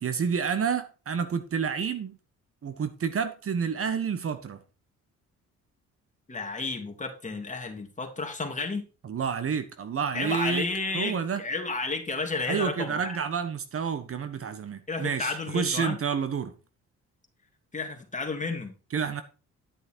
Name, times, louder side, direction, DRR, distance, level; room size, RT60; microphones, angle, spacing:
voice 1, 0.0-2.2 2.6-4.6 9.0-10.7 10.9-11.4 12.5-16.5 18.9-19.2, right 6 dB, 50° right, 1.4 m, -29 dB
voice 2, 6.3-8.9 10.1-13.2 14.9-16.0 17.7-18.7, left 3 dB, 25° left, 2.7 m, -32 dB
11.5 x 6.5 x 4.5 m
cardioid pair, 90°, 30 cm